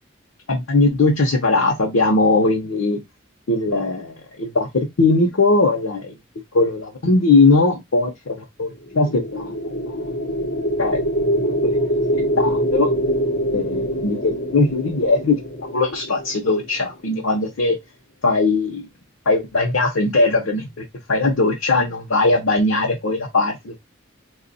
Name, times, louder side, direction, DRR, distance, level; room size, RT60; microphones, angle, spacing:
voice 1, 0.5-3.0 3.5-6.1 6.5-8.3 8.6-10.0 10.8-11.0 11.6-11.8 12.4-12.9 13.5-15.4 15.7-17.8 18.2-18.9 19.3-20.6 21.1-23.8, left 3 dB, 90° left, 0.8 m, -19 dB
sound 1, 8.9-17.0, equal, 60° left, 1.0 m, -24 dB
3.0 x 2.4 x 4.0 m
head